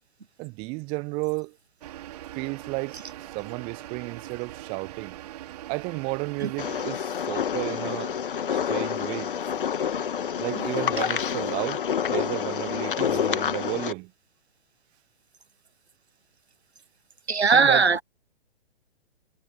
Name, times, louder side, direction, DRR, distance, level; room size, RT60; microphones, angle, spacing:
voice 1, 0.4-1.5 2.3-3.0 3.3-5.2 5.7-8.2 8.5-9.3 10.4-11.8 12.1-14.1 17.5-17.9, right 30 dB, 15° right, 0.7 m, -32 dB
sound 1, 1.8-6.8, right 13 dB, 40° right, 3.4 m, -41 dB
sound 2, 6.6-13.9, left 8 dB, 55° left, 1.4 m, -28 dB
voice 2, 17.3-18.0, right 5 dB, 80° right, 0.9 m, -19 dB
figure-of-eight pair, 125°, 32 cm